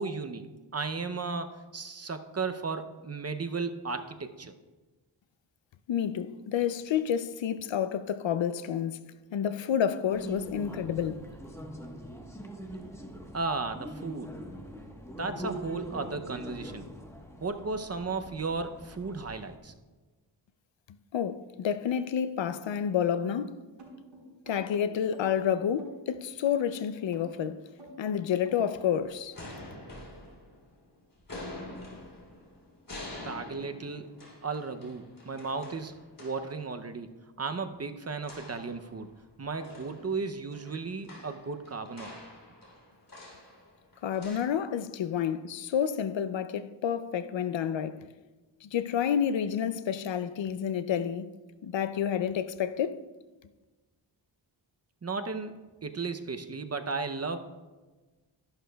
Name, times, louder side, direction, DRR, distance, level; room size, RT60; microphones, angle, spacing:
voice 1, 0.0-4.5 13.3-14.3 15.2-16.9 17.4-19.7 33.2-34.1 34.4-35.9 36.2-37.1 37.4-39.1 39.4-42.1 55.0-57.4, right 4 dB, 35° right, 0.6 m, -35 dB
voice 2, 5.9-9.0 9.3-11.3 21.1-23.5 24.5-27.6 28.0-29.3 44.0-48.0 48.6-51.3 51.6-53.0, left 8 dB, 75° left, 0.5 m, -29 dB
sound 1, 10.1-19.6, equal, 5° left, 1.1 m, -43 dB
sound 2, 23.8-28.9, right 1 dB, 75° right, 3.6 m, -50 dB
sound 3, 29.0-30.8 31.2-36.6 38.2-39.3 39.6-44.4, left 1 dB, 45° left, 3.1 m, -46 dB
13.0 x 11.5 x 2.3 m
wide cardioid pair, 90°, 45 cm